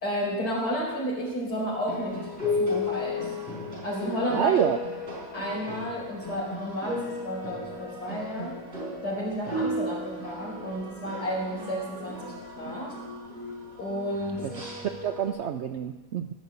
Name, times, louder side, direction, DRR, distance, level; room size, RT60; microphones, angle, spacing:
voice 1, 0.0-2.2 2.6-3.3 3.8-4.5 5.3-8.5 9.0-12.9 13.8-14.4, equal, 85° left, -4 dB, 5.0 m, -31 dB
sound 1, 1.9-15.3, left 2 dB, 40° right, 4.6 m, -35 dB
voice 2, 4.3-4.8 14.4-14.5 14.8-16.3, right 9 dB, 70° right, 7 dB, 0.6 m, -27 dB
16.0 x 5.4 x 8.1 m, 1.2 s
omnidirectional pair, 1.7 m